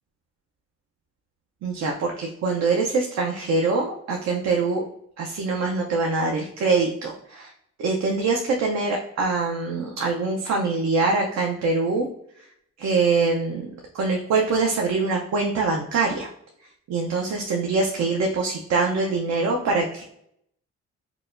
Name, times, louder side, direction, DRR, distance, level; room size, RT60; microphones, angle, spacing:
voice 1, 1.6-4.8 5.2-7.5 7.8-12.1 12.8-13.7 13.9-16.3 16.9-20.0, right 3 dB, 60° right, 1 dB, 0.6 m, -24 dB
4.7 x 2.2 x 2.5 m, 0.73 s
cardioid pair, 90°, 30 cm